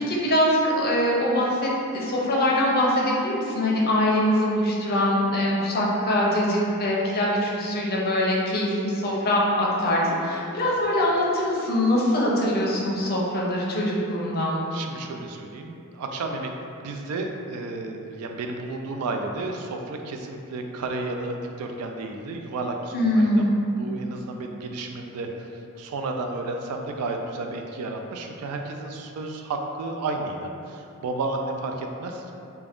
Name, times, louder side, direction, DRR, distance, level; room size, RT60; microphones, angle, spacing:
voice 1, 0.0-14.6 22.9-23.5, left 1 dB, 45° left, -4 dB, 0.5 m, -23 dB
voice 2, 14.7-23.4 23.8-25.3 25.8-32.4, right 2 dB, 85° right, 4 dB, 0.3 m, -32 dB
2.4 x 2.2 x 3.4 m, 2.6 s
head